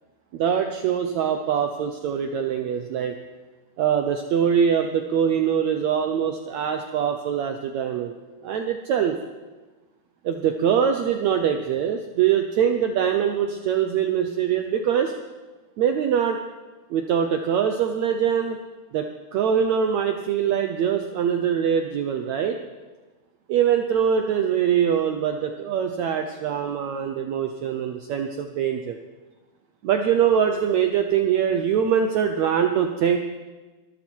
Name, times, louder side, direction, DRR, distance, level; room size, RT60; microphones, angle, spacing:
voice 1, 0.3-3.2 3.8-8.1 8.4-9.2 10.2-15.1 15.8-16.4 16.9-18.6 18.9-22.6 23.5-29.0 29.8-33.2, right 8 dB, 85° right, 5 dB, 1.6 m, -23 dB
23.0 x 13.0 x 4.6 m, 1.2 s
omnidirectional pair, 4.3 m